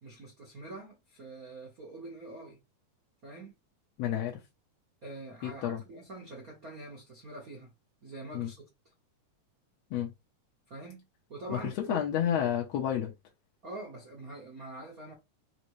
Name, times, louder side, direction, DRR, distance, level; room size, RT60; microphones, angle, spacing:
voice 1, 0.0-2.6 3.2-3.5 5.0-7.7 8.0-8.6 10.7-12.0 13.6-15.1, right 2 dB, 60° right, 0.9 m, -45 dB
voice 2, 4.0-4.4 5.4-5.8 8.3-8.5 9.9-10.1 11.5-11.6 11.9-13.1, left 10 dB, 70° left, 1.7 m, -30 dB
5.2 x 2.8 x 3.1 m
omnidirectional pair, 3.7 m